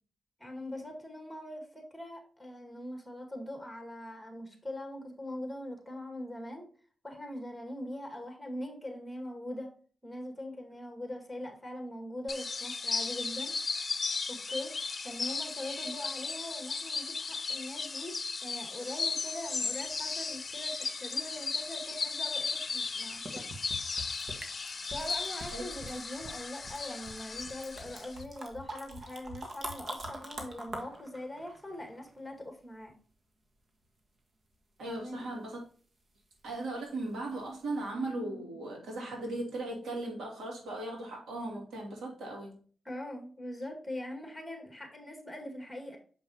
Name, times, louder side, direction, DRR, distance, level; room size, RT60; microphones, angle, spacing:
voice 1, 0.4-6.7 7.0-9.7 10.0-13.5 14.3-14.7 15.0-18.1 18.4-23.5 24.8-32.9 34.8-35.3 42.8-46.0, left 1 dB, 5° left, 2 dB, 2.0 m, -42 dB
sound 1, 12.3-28.2, left 4 dB, 45° left, 0.5 m, -36 dB
sound 2, 19.5-20.4 22.7-22.8 23.3-32.3 37.3-37.4 37.8-37.9, right 1 dB, 55° right, 1.5 m, -45 dB
voice 2, 34.8-35.6 36.4-42.6, right 2 dB, 85° right, -1 dB, 2.6 m, -37 dB
6.6 x 5.5 x 2.9 m, 0.42 s
cardioid pair, 85°, 0 cm